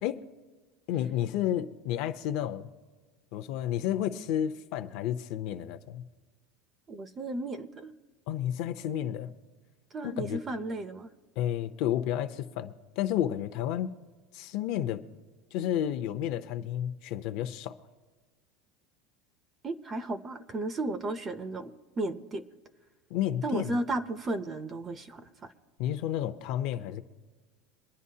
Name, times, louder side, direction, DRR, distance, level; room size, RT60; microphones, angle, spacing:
voice 1, 0.9-2.7 3.3-6.0 8.3-9.3 10.0-10.4 11.4-13.9 14.3-15.0 15.5-17.8 23.1-23.7 25.8-27.0, left 11 dB, 45° left, 0.6 m, -31 dB
voice 2, 6.9-7.9 9.9-11.1 19.6-22.4 23.4-25.5, right 2 dB, 15° right, 0.5 m, -34 dB
24.0 x 10.5 x 2.8 m
cardioid pair, 180°, 0 cm